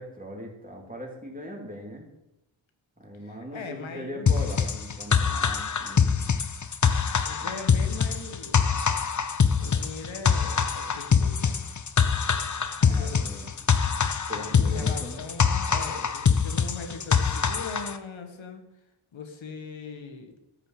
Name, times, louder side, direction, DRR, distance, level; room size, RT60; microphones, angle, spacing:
voice 1, 0.0-2.1 3.0-6.2 7.4-7.5 12.8-13.5 14.3-15.2, equal, 15° right, 0 dB, 3.5 m, -40 dB
voice 2, 3.2-4.3 7.2-8.7 9.6-11.6 12.8-13.3 14.3-18.6 19.1-20.3, left 4 dB, 80° left, 5 dB, 1.8 m, -40 dB
sound 1, 4.3-18.0, left 6 dB, 40° left, 0.9 m, -24 dB
13.5 x 6.9 x 7.7 m, 0.93 s
wide cardioid pair, 80°, 46 cm